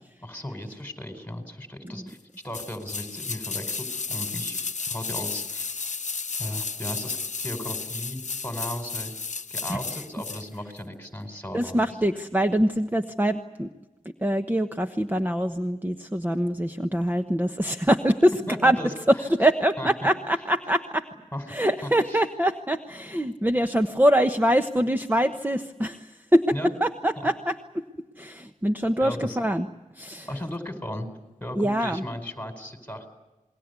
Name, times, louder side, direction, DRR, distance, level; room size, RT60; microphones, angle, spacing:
voice 1, 0.2-2.2 2.4-4.6 4.9-5.7 6.4-7.2 7.4-9.2 9.5-11.9 18.3-18.9 19.8-20.1 21.3-22.2 26.5-26.7 29.0-29.4 30.3-31.1 31.4-33.1, left 1 dB, 10° left, 6 dB, 4.7 m, -36 dB
sound 1, 2.5-10.5 10.8-10.9, left 4 dB, 60° left, 0.8 m, -33 dB
voice 2, 11.5-13.7 14.2-18.8 19.3-21.0 21.5-26.5 26.8-27.5 28.2-29.7 30.0-30.3 31.5-32.0, equal, 15° right, 6 dB, 1.1 m, -24 dB
28.0 x 21.5 x 8.2 m, 1.1 s
wide cardioid pair, 65°, 13 cm